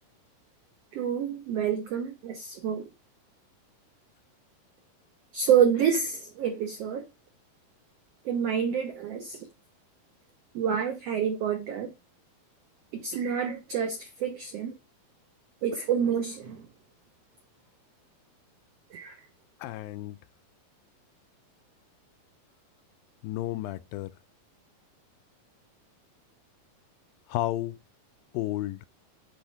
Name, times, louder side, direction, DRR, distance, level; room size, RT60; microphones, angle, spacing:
voice 1, 0.9-2.9 5.3-7.1 8.2-9.5 10.5-11.9 12.9-14.7 15.6-16.7 18.9-19.2, right 8 dB, 80° right, 1.4 m, -28 dB
voice 2, 19.6-20.2 23.2-24.1 27.3-27.8 28.3-28.8, left 15 dB, 85° left, 2.2 m, -32 dB
7.9 x 3.4 x 5.6 m
omnidirectional pair, 4.2 m